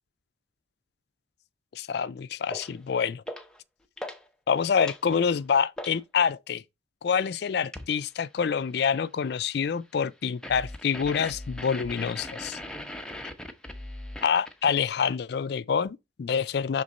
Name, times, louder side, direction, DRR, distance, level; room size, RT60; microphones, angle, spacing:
voice 1, 1.7-3.2 4.5-6.6 7.0-12.6 14.2-16.8, left 6 dB, 55° left, 0.3 m, -27 dB
Fake ID, 2.5-2.8 3.3-3.6 4.0-4.3 4.6-6.0 7.7-8.0 10.4-14.9, left 1 dB, 5° left, 0.6 m, -39 dB
6.3 x 3.7 x 4.1 m
head